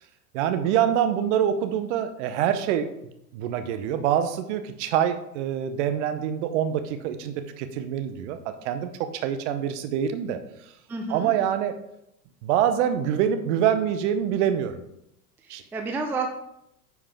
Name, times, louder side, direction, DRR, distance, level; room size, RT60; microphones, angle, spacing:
voice 1, 0.3-2.9 3.3-8.9 9.2-10.4 11.1-11.7 12.4-14.8 15.5-15.6, right 9 dB, 50° right, 9 dB, 0.9 m, -25 dB
voice 2, 10.9-11.3 15.4-16.3, right 3 dB, 5° right, 4 dB, 0.4 m, -30 dB
9.7 x 4.8 x 3.6 m, 0.79 s
figure-of-eight pair, 85°, 46 cm